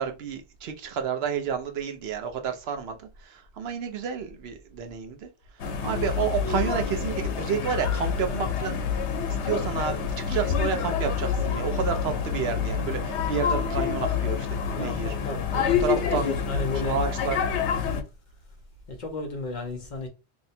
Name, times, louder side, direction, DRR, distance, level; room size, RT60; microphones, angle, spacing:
voice 1, 0.0-5.3 5.8-8.8 9.4-15.1 15.5-16.3 16.7-17.4, right 7 dB, 70° right, 0.8 m, -30 dB
sound 1, 5.6-18.0, left 6 dB, 85° left, 0.9 m, -27 dB
voice 2, 14.8-17.0 18.9-20.1, left 2 dB, 50° left, 0.7 m, -34 dB
2.8 x 2.1 x 4.1 m
omnidirectional pair, 1.1 m